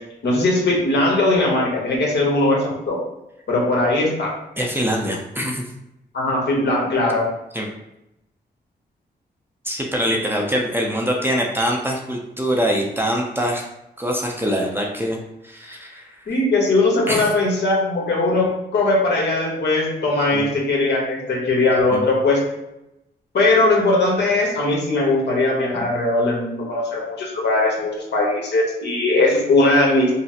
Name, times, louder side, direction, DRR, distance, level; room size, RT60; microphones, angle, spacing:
voice 1, 0.2-3.0 3.5-4.3 6.1-7.2 16.3-18.5 18.7-22.4 23.3-30.1, left 2 dB, 75° left, -2 dB, 1.2 m, -19 dB
voice 2, 4.6-5.6 7.5-7.7 9.6-13.6 14.0-15.2 15.4-16.1 17.1-17.3 20.3-20.4 21.9-22.1 25.8-25.9, equal, 10° right, -1 dB, 0.5 m, -23 dB
5.5 x 2.0 x 2.8 m, 0.87 s
wide cardioid pair, 115°, 18 cm